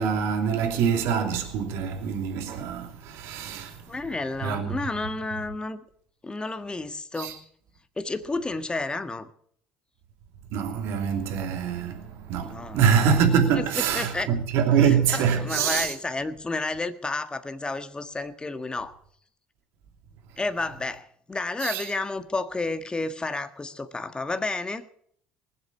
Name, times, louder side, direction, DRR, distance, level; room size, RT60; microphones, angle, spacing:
voice 1, 0.0-3.8 4.4-4.7 7.2-7.3 10.5-15.9 21.6-21.9, right 7 dB, 70° right, 2.8 m, -24 dB
voice 2, 3.9-5.8 6.2-7.4 8.0-9.3 12.4-12.8 13.5-13.6 13.9-14.3 14.8-19.0 20.4-24.9, left 3 dB, 20° left, 1.6 m, -31 dB
20.0 x 8.0 x 8.4 m
hypercardioid pair, 60°, 5 cm